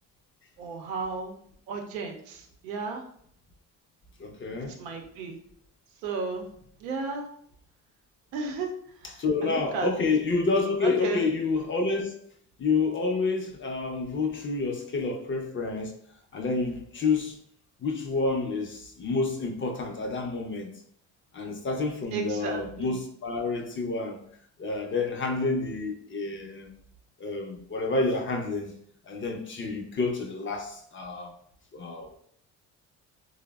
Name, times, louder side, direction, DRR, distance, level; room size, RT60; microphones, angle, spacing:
voice 1, 0.6-1.4 1.7-3.0 4.8-5.4 6.0-6.5 6.8-7.3 8.3-8.7 9.4-9.9 10.8-11.2 22.1-22.9, right 4 dB, 90° right, 0.6 m, -33 dB
voice 2, 4.2-4.8 9.0-12.1 12.6-15.9 16.3-17.4 17.8-20.7 21.3-24.2 24.6-26.7 27.2-28.7 29.0-31.3 31.7-32.2, left 3 dB, 30° left, 0.5 m, -29 dB
3.2 x 2.0 x 2.2 m
supercardioid pair, 65°, 41 cm